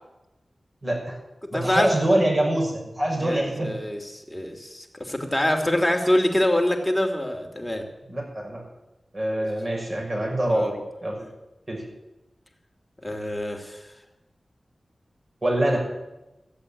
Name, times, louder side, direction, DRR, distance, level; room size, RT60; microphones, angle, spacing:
voice 1, 0.8-1.2 1.5-3.8 8.1-8.6 9.1-10.7 11.0-11.1 11.7-11.8 15.4-15.8, right 1 dB, 45° right, -1 dB, 5.9 m, -24 dB
voice 2, 1.4-2.0 3.1-7.8 9.4-9.5 10.5-10.8 11.1-11.3 13.0-13.9, left 1 dB, 10° left, 3 dB, 2.7 m, -25 dB
14.5 x 8.0 x 8.6 m, 1.0 s
cardioid pair, 45°, 0 cm